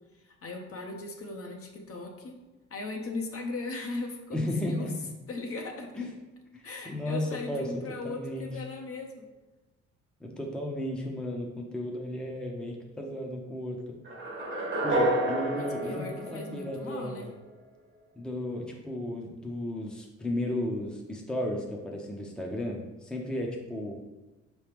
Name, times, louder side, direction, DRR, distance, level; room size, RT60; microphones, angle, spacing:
voice 1, 0.2-2.3 2.7-4.9 5.3-5.9 6.6-9.3 15.5-17.3, left 3 dB, 50° left, 2 dB, 0.8 m, -38 dB
voice 2, 4.3-4.9 6.0-6.1 6.5-7.7 8.0-8.5 10.2-14.0 14.8-17.3 18.1-24.0, left 1 dB, 5° left, -1 dB, 0.7 m, -34 dB
sound 1, 14.1-17.2, right 1 dB, 40° right, 1.0 m, -30 dB
4.7 x 3.1 x 3.4 m, 1.1 s
cardioid pair, 90°, 30 cm